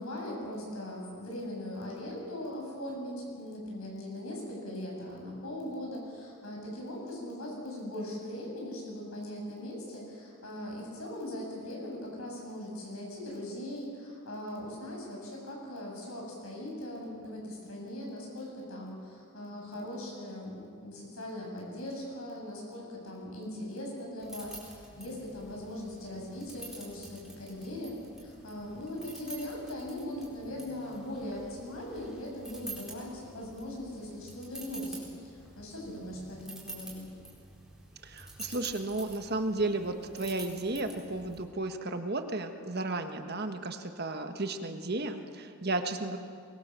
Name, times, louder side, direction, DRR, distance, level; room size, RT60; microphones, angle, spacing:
voice 1, 0.0-37.1, left 1 dB, 75° left, -1 dB, 7.7 m, -40 dB
sound 1, 24.2-41.4, right 2 dB, ahead, 4.6 m, -48 dB
voice 2, 38.0-46.2, right 2 dB, 45° right, 6 dB, 1.5 m, -33 dB
22.5 x 22.0 x 7.5 m, 2.3 s
head